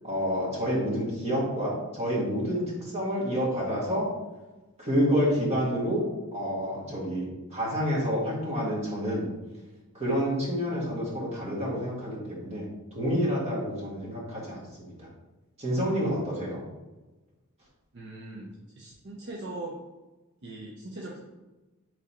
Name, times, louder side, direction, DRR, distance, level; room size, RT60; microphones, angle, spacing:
voice 1, 0.0-4.1 4.8-6.0 6.3-9.2 9.9-15.1 15.6-16.6, equal, 30° right, -5 dB, 1.5 m, -28 dB
voice 2, 17.9-19.7 20.4-21.2, right 2 dB, 50° right, -3 dB, 0.6 m, -40 dB
3.8 x 3.2 x 4.2 m, 1.1 s
head